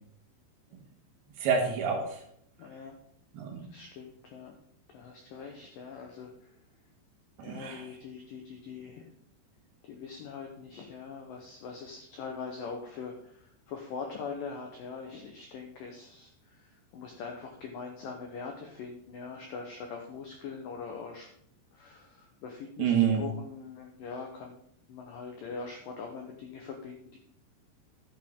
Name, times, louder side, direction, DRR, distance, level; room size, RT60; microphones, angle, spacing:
voice 1, 1.4-2.2 3.3-3.7 7.4-7.9 22.8-23.2, right 7 dB, 65° right, 2 dB, 3.2 m, -28 dB
voice 2, 2.6-2.9 3.7-4.5 4.9-6.3 7.4-9.1 9.9-13.1 13.7-16.3 16.9-21.3 21.7-22.9 23.2-24.6 24.9-27.2, left 5 dB, 75° left, 2 dB, 2.0 m, -42 dB
11.5 x 9.1 x 3.6 m, 0.67 s
omnidirectional pair, 5.3 m